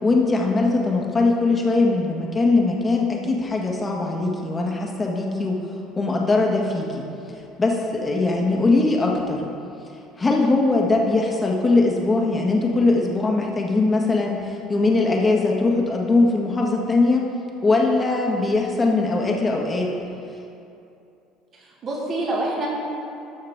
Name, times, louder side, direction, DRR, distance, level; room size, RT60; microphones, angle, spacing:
voice 1, 0.0-5.6 6.0-7.0 7.6-9.4 10.2-17.3 17.6-19.9, left 3 dB, 25° left, -1 dB, 1.6 m, -21 dB
voice 2, 21.5-22.7, right 2 dB, 45° right, -4 dB, 2.2 m, -27 dB
12.5 x 6.4 x 3.7 m, 2.7 s
hypercardioid pair, 70°, 0 cm